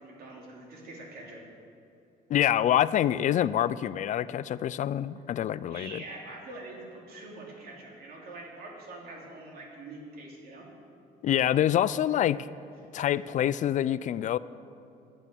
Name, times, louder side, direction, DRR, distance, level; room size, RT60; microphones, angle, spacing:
voice 1, 0.0-1.4 5.7-10.7, right 2 dB, 65° right, -1 dB, 3.0 m, -44 dB
voice 2, 2.3-6.0 11.2-12.5 12.9-14.4, left 11 dB, 45° left, 17 dB, 0.4 m, -26 dB
12.0 x 8.0 x 7.3 m, 2.7 s
cardioid pair, 110°, 17 cm